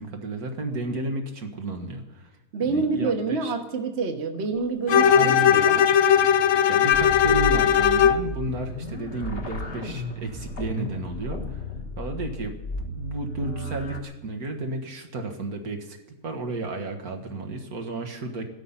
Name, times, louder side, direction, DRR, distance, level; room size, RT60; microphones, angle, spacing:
voice 1, 0.0-2.3 2.6-3.5 4.9-5.6 6.7-11.7 12.0-16.0 16.2-18.5, right 2 dB, 80° right, 3 dB, 2.1 m, -32 dB
voice 2, 2.5-5.9, right 4 dB, 50° right, 5 dB, 1.4 m, -27 dB
Bowed string instrument, 4.9-8.3, left 8 dB, 65° left, 1.1 m, -18 dB
sound 1, 6.9-14.0, left 1 dB, 40° left, 1.5 m, -34 dB
16.5 x 12.5 x 5.7 m, 1.1 s
omnidirectional pair, 1.6 m